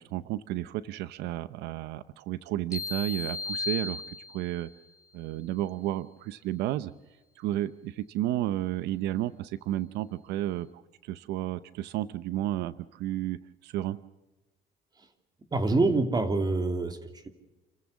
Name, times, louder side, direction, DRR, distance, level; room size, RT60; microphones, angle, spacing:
voice 1, 0.0-4.7 5.1-6.9 7.4-14.0, right 14 dB, 85° right, 15 dB, 0.8 m, -32 dB
sound 1, 2.7-4.7, left 3 dB, 20° left, 3.3 m, -35 dB
voice 2, 15.5-17.3, right 3 dB, 25° right, 7 dB, 2.8 m, -26 dB
29.5 x 15.0 x 7.1 m, 1.1 s
cardioid pair, 110°, 17 cm